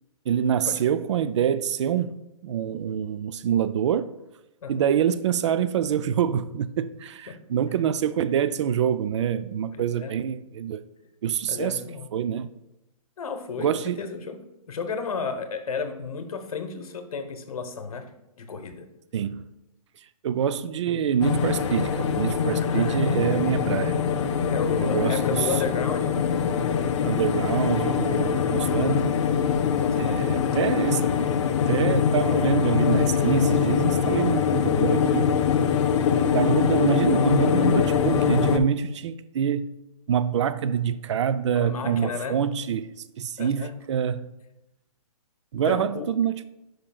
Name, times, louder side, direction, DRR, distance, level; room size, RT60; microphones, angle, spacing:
voice 1, 0.3-4.1 4.7-10.8 11.2-11.8 12.1-12.5 13.6-14.0 19.1-19.5 20.2-24.0 24.8-25.6 27.0-29.2 29.9-31.1 31.7-35.3 36.3-39.7 40.1-42.9 43.2-44.3 45.5-46.4, right 8 dB, 50° right, 0.4 m, -26 dB
voice 2, 9.7-10.1 11.5-12.1 13.2-13.7 14.0-14.4 14.7-18.1 18.4-18.9 22.7-23.4 24.5-26.2 29.8-30.4 41.5-42.4 43.4-43.7 45.6-46.1, left 5 dB, 70° left, 1.0 m, -33 dB
sound 1, 21.2-38.6, left 7 dB, 50° left, 0.5 m, -23 dB
9.8 x 5.1 x 2.3 m
hypercardioid pair, 145°, 19 cm